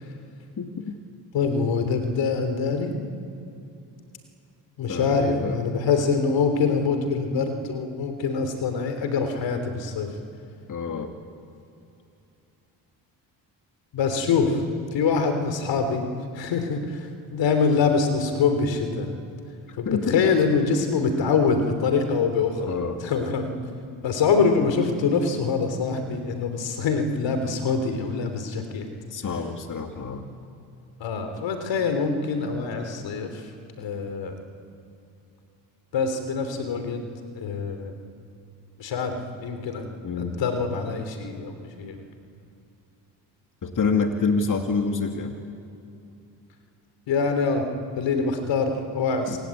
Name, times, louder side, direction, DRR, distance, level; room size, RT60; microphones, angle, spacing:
voice 1, 0.6-1.0 4.9-5.6 10.7-11.1 19.7-20.2 22.6-23.0 29.1-30.3 40.0-40.4 43.6-45.3 49.3-49.4, left 4 dB, 45° left, 4 dB, 2.4 m, -27 dB
voice 2, 1.3-3.0 4.8-10.1 13.9-14.6 14.9-16.1 16.3-19.1 19.8-23.5 24.0-28.9 31.0-33.3 33.8-34.4 35.9-37.0 37.4-37.9 38.8-39.9 40.2-42.0 47.1-47.7 48.0-49.4, left 5 dB, 75° left, 7 dB, 3.5 m, -24 dB
27.0 x 20.5 x 8.6 m, 2.7 s
supercardioid pair, 60°, 45 cm